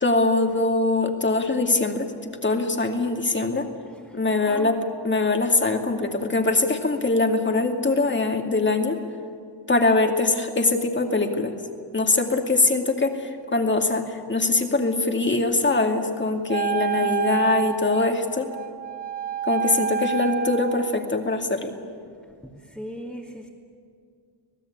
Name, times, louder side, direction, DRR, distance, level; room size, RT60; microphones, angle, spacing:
voice 1, 0.0-3.7 4.1-9.0 9.7-11.5 11.9-18.5 19.4-21.7, left 3 dB, 25° left, 4 dB, 2.3 m, -23 dB
Wind instrument woodwind instrument, 16.5-21.0, right 8 dB, 20° right, 0.8 m, -28 dB
voice 2, 17.0-17.5 22.4-23.5, equal, ahead, -3 dB, 2.3 m, -39 dB
26.0 x 18.0 x 8.8 m, 2.3 s
cardioid pair, 95°, 47 cm